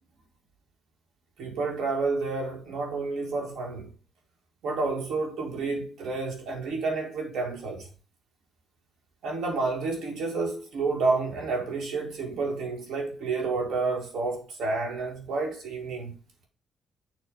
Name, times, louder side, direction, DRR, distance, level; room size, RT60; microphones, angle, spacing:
voice 1, 1.4-3.9 4.6-7.9 9.2-16.1, right 3 dB, 75° right, 1.9 m, -30 dB
6.6 x 2.9 x 5.4 m
cardioid pair, 145°, 0 cm